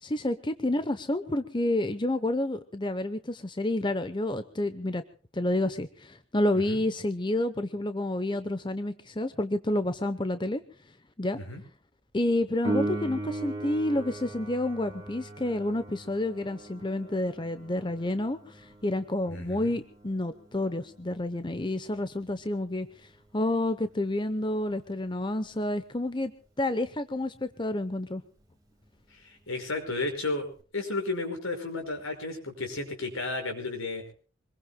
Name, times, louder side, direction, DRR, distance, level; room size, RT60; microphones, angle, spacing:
voice 1, 0.0-5.0 5.3-10.6 11.2-11.4 12.1-22.9 23.3-26.3 26.6-28.2, left 1 dB, 20° left, 11 dB, 0.8 m, -29 dB
Piano, 12.6-23.0 30.6-30.7, right 2 dB, 20° right, 3.8 m, -39 dB
voice 2, 19.3-19.7 29.1-30.5 30.7-34.0, left 2 dB, 85° left, 4 dB, 5.7 m, -33 dB
25.5 x 21.0 x 2.2 m, 0.41 s
head